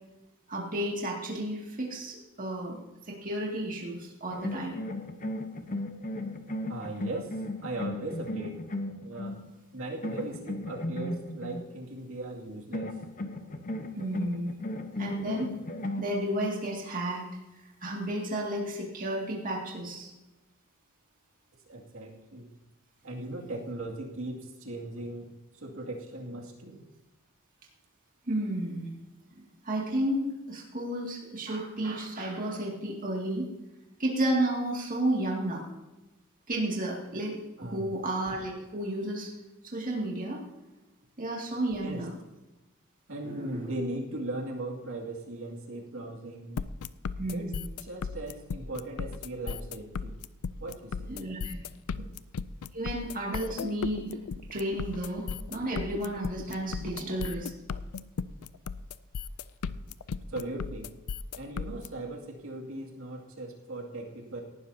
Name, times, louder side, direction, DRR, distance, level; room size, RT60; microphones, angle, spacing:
voice 1, 0.5-4.8 13.9-14.5 15.0-15.5 16.0-17.3 17.8-20.1 28.3-28.9 29.3-33.5 34.0-35.6 36.5-39.3 39.6-40.4 41.2-42.1 43.2-43.7 47.2-47.6 51.1-51.6 52.7-54.2 54.5-57.5, right 1 dB, 40° right, -2 dB, 2.3 m, -32 dB
sound 1, 4.3-9.5 10.0-11.6 12.7-16.6, left 1 dB, 40° left, 1.0 m, -36 dB
voice 2, 6.7-7.3 7.6-8.6 9.0-9.4 9.7-12.9 21.7-22.5 23.0-26.8 37.6-37.9 41.8-42.1 43.1-46.6 47.3-47.5 47.8-50.2 50.6-51.1 60.3-60.9 61.3-64.4, right 2 dB, 65° right, 0 dB, 2.3 m, -38 dB
sound 2, 46.6-61.9, left 5 dB, 80° left, 0.4 m, -35 dB
18.0 x 12.0 x 2.8 m, 1.0 s
head